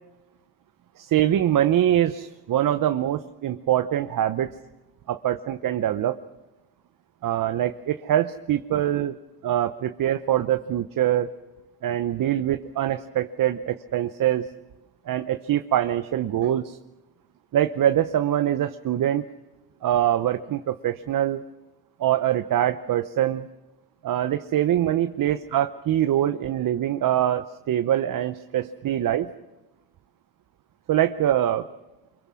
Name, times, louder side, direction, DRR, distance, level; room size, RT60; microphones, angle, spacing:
voice 1, 1.0-4.5 5.1-6.2 7.2-9.2 9.4-11.3 11.8-14.4 15.1-16.8 17.5-19.3 19.8-21.4 22.0-23.5 24.0-29.3 30.9-31.6, right 11 dB, 50° right, 9 dB, 0.9 m, -24 dB
25.0 x 22.5 x 6.2 m, 1.0 s
cardioid pair, 90°, 41 cm